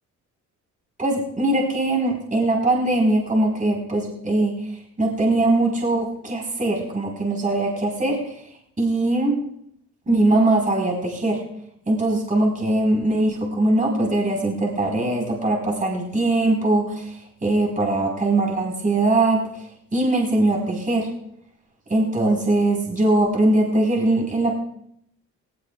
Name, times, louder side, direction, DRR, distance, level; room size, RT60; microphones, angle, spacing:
voice 1, 1.0-4.5 5.0-8.2 8.8-9.4 10.1-11.4 11.9-17.2 17.4-19.4 19.9-21.1 21.9-24.5, right 2 dB, 25° right, -1 dB, 4.8 m, -21 dB
19.0 x 18.5 x 2.5 m, 0.71 s
cardioid pair, 90°, 30 cm